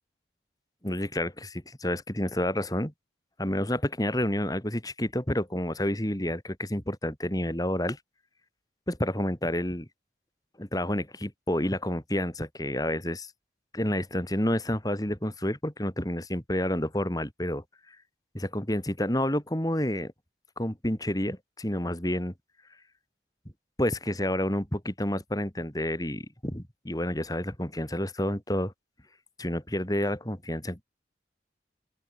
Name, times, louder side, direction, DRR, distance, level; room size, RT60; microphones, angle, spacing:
voice 1, 0.8-2.9 3.4-8.0 8.9-9.9 10.6-13.3 13.7-17.6 18.3-20.1 20.6-22.3 23.8-28.7 29.4-30.8, left 1 dB, 20° left, 3.3 m, -29 dB
open air
head